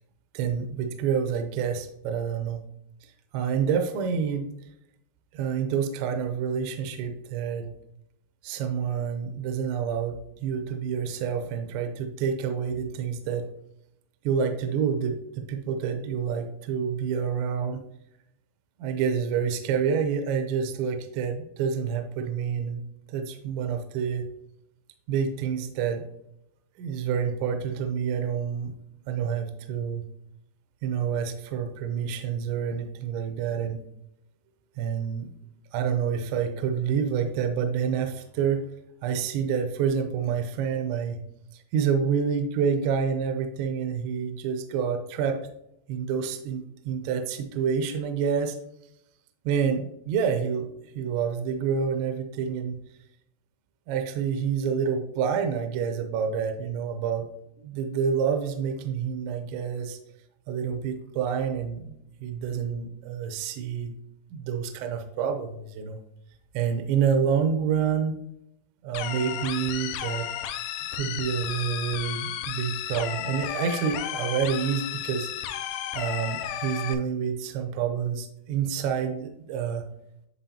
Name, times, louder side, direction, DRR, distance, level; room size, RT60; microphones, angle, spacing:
voice 1, 0.3-2.6 3.0-4.5 5.3-7.7 8.4-13.5 14.2-17.8 18.8-22.8 23.1-24.3 25.1-26.0 26.8-28.7 29.1-30.0 30.8-33.8 34.8-35.3 35.7-38.7 39.0-41.2 41.5-45.4 45.9-48.6 49.5-52.8 53.9-57.3 57.6-60.0 60.5-63.9 64.3-66.0 66.5-68.2 68.8-70.3 70.9-75.6 75.9-79.8, right 7 dB, 80° right, 6 dB, 2.7 m, -28 dB
sound 1, 68.9-76.9, left 11 dB, 90° left, 2.9 m, -33 dB
10.0 x 3.7 x 2.8 m, 0.78 s
omnidirectional pair, 5.3 m